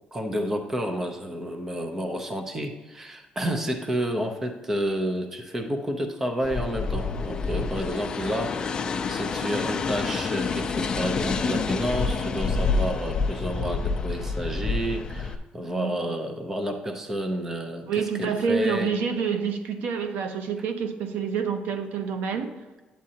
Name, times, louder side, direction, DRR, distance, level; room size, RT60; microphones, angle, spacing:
voice 1, 0.1-18.9, equal, 15° right, 5 dB, 0.6 m, -30 dB
sound 1, 6.4-15.3, left 4 dB, 25° left, 0.4 m, -28 dB
voice 2, 15.6-16.0 17.9-22.5, right 6 dB, 80° right, 8 dB, 0.8 m, -28 dB
8.8 x 8.6 x 2.8 m, 1.2 s
cardioid pair, 180°, 3 cm